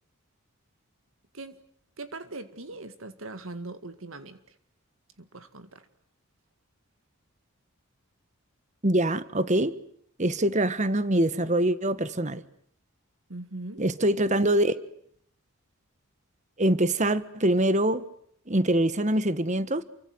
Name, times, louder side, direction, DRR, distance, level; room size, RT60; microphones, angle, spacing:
voice 1, 2.0-4.4 5.2-5.9 13.3-13.8, right 2 dB, 65° right, 2.0 m, -40 dB
voice 2, 8.8-9.7 10.2-12.4 13.8-14.7 16.6-18.0 18.5-19.8, right 1 dB, 35° right, 1.5 m, -24 dB
29.5 x 24.0 x 8.0 m
head